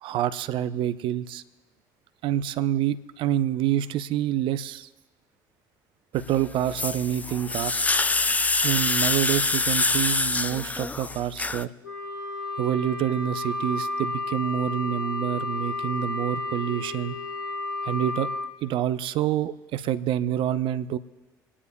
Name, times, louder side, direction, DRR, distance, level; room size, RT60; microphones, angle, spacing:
voice 1, 0.0-1.4 2.2-4.9 6.1-7.9 8.6-11.7 12.6-17.2 17.8-18.3 18.6-21.0, right 11 dB, 55° right, 13 dB, 0.6 m, -27 dB
sound 1, 6.2-11.6, left 3 dB, 15° left, 0.4 m, -25 dB
Wind instrument woodwind instrument, 11.8-18.5, left 2 dB, 85° left, 0.9 m, -32 dB
27.5 x 9.8 x 2.3 m, 1.1 s
figure-of-eight pair, 55°, 10 cm